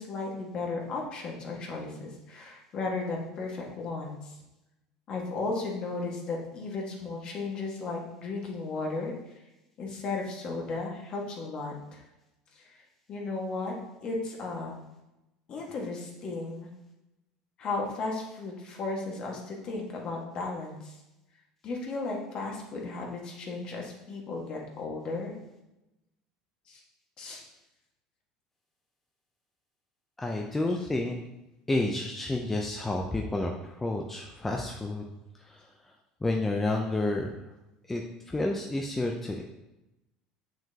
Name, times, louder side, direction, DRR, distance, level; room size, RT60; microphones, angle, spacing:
voice 1, 0.0-4.3 5.1-9.1 9.8-12.0 12.5-12.7 13.1-13.7 14.0-14.8 15.5-16.7 17.6-21.0 21.6-25.3 26.7-26.8 27.2-27.4 30.7-30.8, left 3 dB, 45° left, 0 dB, 1.7 m, -35 dB
voice 2, 30.2-31.2 31.7-35.1 35.4-35.9 36.2-37.3 37.9-39.4, left 2 dB, 10° left, 1 dB, 0.6 m, -30 dB
7.2 x 6.1 x 2.9 m, 0.94 s
supercardioid pair, 120°, 2 cm